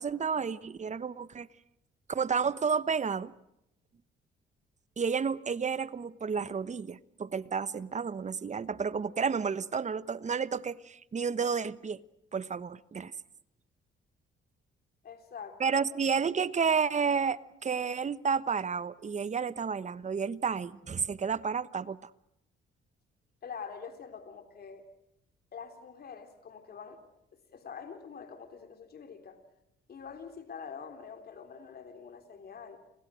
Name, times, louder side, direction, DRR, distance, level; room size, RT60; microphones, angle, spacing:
voice 1, 0.0-1.5 2.1-3.3 5.0-12.0 12.3-13.1 15.6-22.1, right 6 dB, 35° right, 1.1 m, -31 dB
voice 2, 15.0-15.8 23.4-24.8 25.5-27.0 27.3-29.4 29.9-32.8, left 6 dB, 50° left, 3.6 m, -45 dB
30.0 x 26.0 x 6.4 m
cardioid pair, 90°, 20 cm